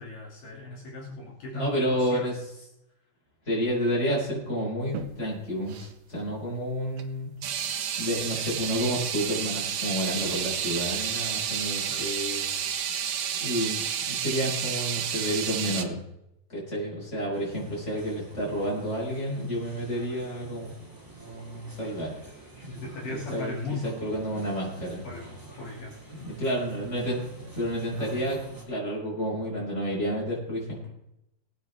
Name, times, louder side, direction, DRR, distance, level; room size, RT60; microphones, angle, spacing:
voice 1, 0.0-2.3 11.9-12.1 22.7-24.0 25.0-26.2, left 3 dB, 70° left, -4 dB, 4.3 m, -37 dB
voice 2, 1.5-2.3 3.5-7.3 8.0-12.4 13.4-16.0 16.5-20.7 21.1-22.1 23.3-23.5 24.0-25.1 26.2-27.2 27.5-28.4 28.7-30.9, equal, 20° left, -5 dB, 6.4 m, -30 dB
sound 1, 4.8-5.1 5.7-5.9 7.0-7.1 7.4-15.8, right 8 dB, 85° right, 1.2 m, -31 dB
sound 2, 17.3-28.6, right 1 dB, 5° right, 2.5 m, -47 dB
21.5 x 9.2 x 3.6 m, 0.83 s
omnidirectional pair, 4.0 m